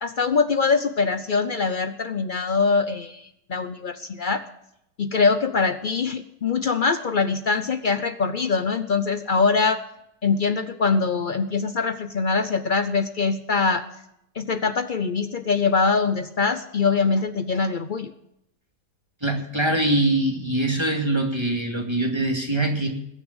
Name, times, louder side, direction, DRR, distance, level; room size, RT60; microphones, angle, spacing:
voice 1, 0.0-4.4 5.0-9.8 10.2-13.9 14.3-18.1, left 4 dB, 65° left, 10 dB, 0.5 m, -23 dB
voice 2, 19.2-22.9, right 1 dB, 15° right, 1 dB, 2.3 m, -23 dB
20.5 x 7.0 x 8.0 m, 0.79 s
omnidirectional pair, 1.8 m